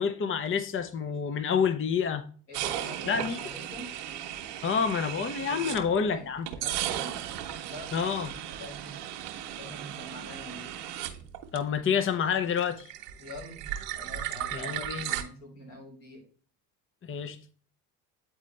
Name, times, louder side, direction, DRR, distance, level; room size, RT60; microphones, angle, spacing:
voice 1, 0.0-2.2 3.1-3.4 4.6-6.5 7.9-8.3 11.5-12.9 14.5-15.1 17.0-17.4, left 6 dB, 30° left, 0.7 m, -28 dB
voice 2, 2.5-4.0 5.5-7.2 7.6-9.0 9.5-10.7 13.2-16.3, left 1 dB, 90° left, 3.0 m, -46 dB
sound 1, 2.5-6.1 6.5-12.0 12.3-15.2, right 11 dB, 85° right, 1.0 m, -36 dB
9.0 x 4.2 x 3.2 m
hypercardioid pair, 60°, 46 cm